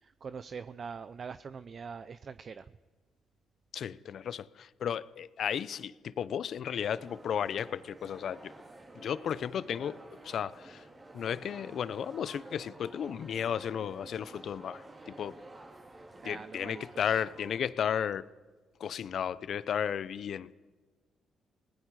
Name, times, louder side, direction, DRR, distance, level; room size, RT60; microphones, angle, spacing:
voice 1, 0.0-2.7 16.2-17.2, right 6 dB, 45° right, 0.6 m, -43 dB
voice 2, 3.7-8.5 8.9-10.9 11.1-15.4 16.2-18.3 18.8-20.5, left 8 dB, 60° left, 0.8 m, -34 dB
sound 1, 6.9-17.6, right 2 dB, 25° right, 3.5 m, -51 dB
28.5 x 20.0 x 4.9 m
cardioid pair, 90°, 0 cm